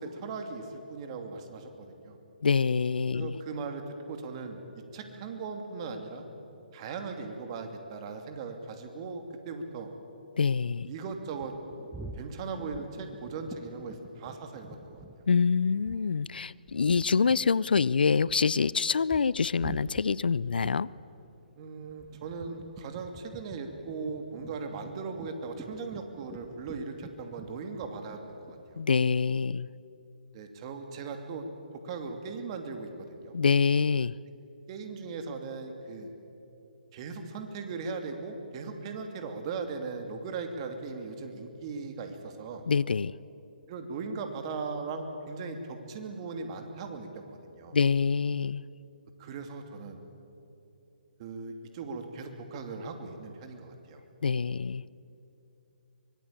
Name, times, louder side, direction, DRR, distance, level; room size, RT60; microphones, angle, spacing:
voice 1, 0.0-1.7 2.0-2.2 3.1-4.6 4.9-6.2 6.7-9.9 10.9-11.5 12.2-15.0 21.6-28.8 30.3-31.5 31.8-33.4 34.7-36.1 36.9-42.6 43.7-47.8 49.2-50.0 51.2-54.0, right 4 dB, 35° right, 5 dB, 2.9 m, -38 dB
voice 2, 2.4-3.4 10.4-10.9 15.3-20.9 28.8-29.7 33.3-34.2 42.7-43.1 47.7-48.6 54.2-54.9, left 5 dB, 75° left, 22 dB, 0.5 m, -26 dB
sound 1, 10.6-16.2 16.4-28.9, right 2 dB, 5° right, 1.1 m, -48 dB
24.0 x 21.0 x 8.8 m, 2.9 s
figure-of-eight pair, 140°, 5 cm